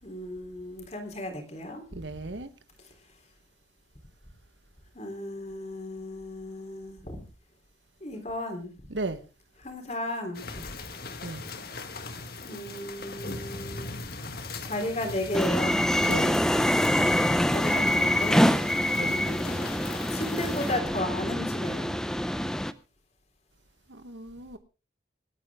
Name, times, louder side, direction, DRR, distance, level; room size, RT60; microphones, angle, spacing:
voice 1, 0.0-1.8 4.9-7.2 8.0-8.7 9.6-10.6 12.4-14.0 14.6-15.9 17.5-18.5 19.1-22.0, left 1 dB, 35° left, 3.5 m, -35 dB
voice 2, 1.9-2.5 8.9-9.2 11.2-11.4 16.0-16.4 19.0-19.3 23.9-24.6, right 2 dB, 80° right, 1.3 m, -35 dB
sound 1, 10.3-20.7, left 4 dB, 55° left, 1.7 m, -40 dB
sound 2, 15.3-22.7, equal, 5° left, 0.6 m, -25 dB
26.5 x 9.1 x 3.6 m
head